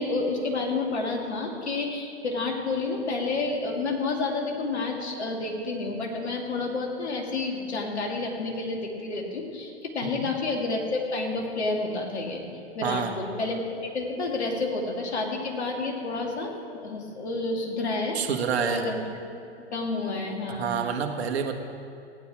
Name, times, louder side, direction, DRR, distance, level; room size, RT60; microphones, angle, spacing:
voice 1, 0.0-12.4 12.7-18.2 18.6-19.0 19.7-20.8, left 3 dB, 85° left, 0 dB, 2.5 m, -30 dB
voice 2, 12.8-13.1 18.1-18.8 20.5-21.5, right 7 dB, 75° right, 4 dB, 1.6 m, -28 dB
16.0 x 9.9 x 4.8 m, 2.4 s
hypercardioid pair, 110°, 32 cm